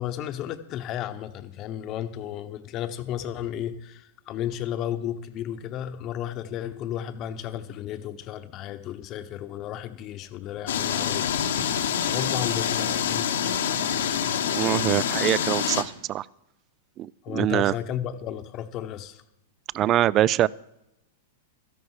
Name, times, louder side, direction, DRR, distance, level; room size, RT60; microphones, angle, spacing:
voice 1, 0.0-11.8 12.1-13.3 17.2-19.2, left 10 dB, 35° left, 10 dB, 0.9 m, -33 dB
sound 1, 10.7-15.8, left 8 dB, 80° left, 1.2 m, -26 dB
voice 2, 14.5-16.3 17.0-17.7 19.7-20.5, right 12 dB, 35° right, 23 dB, 0.3 m, -23 dB
13.0 x 11.0 x 4.8 m, 0.86 s
hypercardioid pair, 125°, 0 cm